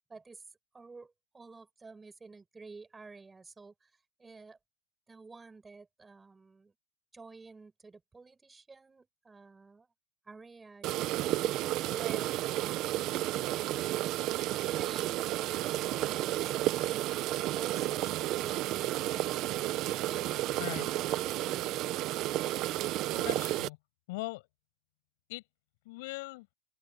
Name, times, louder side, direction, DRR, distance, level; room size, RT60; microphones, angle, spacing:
voice 1, 0.1-0.4 0.7-3.9 4.2-4.6 5.1-6.7 7.1-9.9 10.2-11.4 11.8-13.7 14.4-18.1 18.4-21.9, right 4 dB, 10° right, 5.9 m, -51 dB
sound 1, 10.8-23.7, right 15 dB, 30° right, 0.6 m, -32 dB
voice 2, 23.1-23.8 24.1-24.5 25.3-25.4 25.8-26.5, left 23 dB, 55° left, 6.5 m, -40 dB
open air
supercardioid pair, 180°, 0 cm